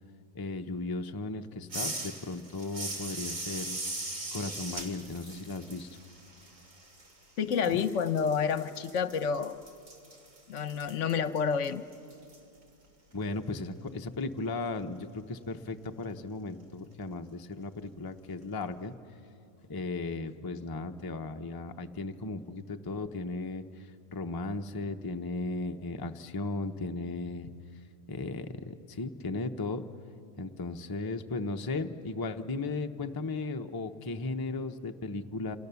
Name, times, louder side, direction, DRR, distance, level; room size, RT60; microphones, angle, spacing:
voice 1, 0.3-3.8 4.3-6.0 7.7-7.8 13.1-18.9 19.7-27.5 28.1-29.8 30.4-35.6, left 3 dB, 25° left, 6 dB, 0.6 m, -36 dB
sound 1, 1.7-7.2 7.5-12.4, right 2 dB, 70° right, 3.0 m, -40 dB
voice 2, 7.4-9.6 10.5-11.8, left 6 dB, 65° left, 12 dB, 1.1 m, -29 dB
28.5 x 27.0 x 6.9 m, 2.6 s
omnidirectional pair, 1.4 m